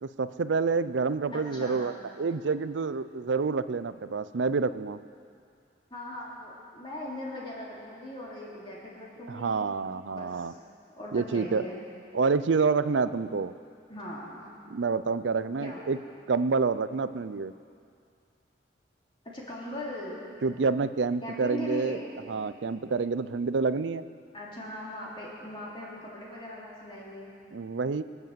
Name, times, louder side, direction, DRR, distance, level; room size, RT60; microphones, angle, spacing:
voice 1, 0.0-5.0 9.3-10.5 11.1-11.6 12.1-13.5 14.7-16.0 16.3-17.5 20.4-22.0 22.3-24.0 27.5-28.0, right 4 dB, 80° right, 14 dB, 0.5 m, -28 dB
voice 2, 1.3-1.9 5.9-9.6 10.1-10.5 10.9-11.8 13.9-14.5 15.6-15.8 19.2-20.2 21.2-22.0 24.3-27.3, equal, 25° left, -6 dB, 3.4 m, -39 dB
24.0 x 8.2 x 7.5 m, 2.4 s
head